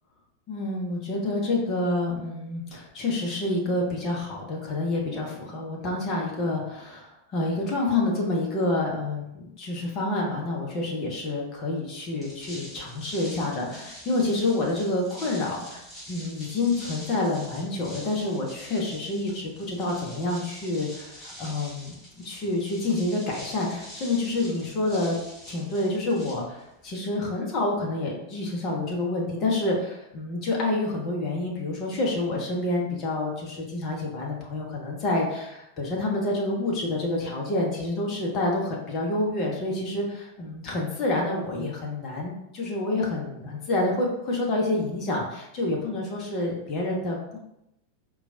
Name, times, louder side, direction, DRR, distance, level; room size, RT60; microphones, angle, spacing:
voice 1, 0.5-25.2 25.5-47.4, left 2 dB, 35° left, -2 dB, 0.8 m, -28 dB
sound 1, 12.1-26.9, equal, 10° left, 1.4 m, -45 dB
4.4 x 2.3 x 2.7 m, 0.85 s
figure-of-eight pair, 90°, 0 cm